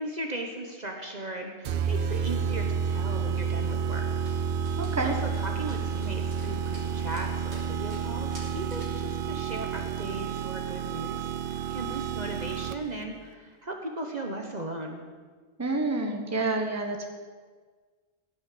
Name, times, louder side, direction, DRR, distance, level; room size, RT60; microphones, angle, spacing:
voice 1, 0.0-4.2 5.0-11.2 11.7-15.0, right 2 dB, 40° right, 2 dB, 1.3 m, -37 dB
sound 1, 1.7-13.0, right 7 dB, 60° right, 0.7 m, -30 dB
Dog, 4.3-9.1, right 1 dB, 75° right, 3.4 m, -51 dB
voice 2, 4.8-5.2 15.6-17.1, right 2 dB, 15° right, 2 dB, 1.3 m, -28 dB
16.0 x 6.4 x 8.6 m, 1.5 s
omnidirectional pair, 1.1 m